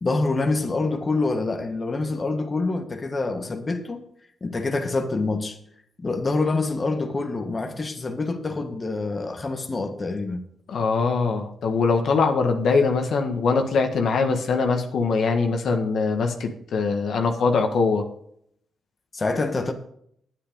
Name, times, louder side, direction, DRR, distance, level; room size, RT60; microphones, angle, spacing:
voice 1, 0.0-4.0 4.4-5.6 6.0-10.4 19.1-19.7, left 3 dB, 35° left, 1.5 m, -26 dB
voice 2, 10.7-18.1, left 4 dB, 70° left, 1.7 m, -22 dB
9.6 x 9.4 x 5.2 m
cardioid pair, 70°, 0 cm